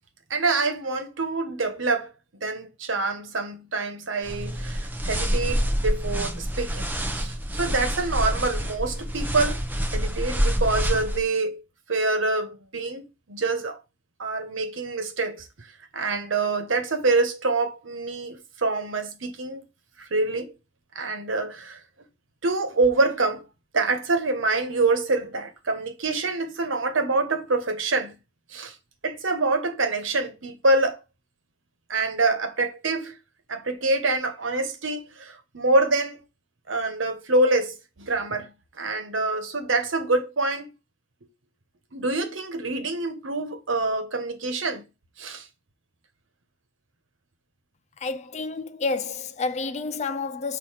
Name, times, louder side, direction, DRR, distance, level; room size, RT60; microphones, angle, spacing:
voice 1, 0.3-2.1 2.4-9.6 9.9-11.6 11.9-13.8 14.2-15.7 15.9-19.7 20.0-20.5 20.9-21.8 22.4-23.5 23.7-28.2 28.5-28.8 29.0-31.0 31.9-33.1 33.5-36.2 36.7-40.7 41.9-44.9 45.2-45.5, right 3 dB, 75° right, 1.2 m, -26 dB
sound 1, 4.2-11.2, equal, 10° right, 0.8 m, -27 dB
voice 2, 48.0-50.6, left 4 dB, 35° left, 0.4 m, -29 dB
6.6 x 2.9 x 5.7 m
head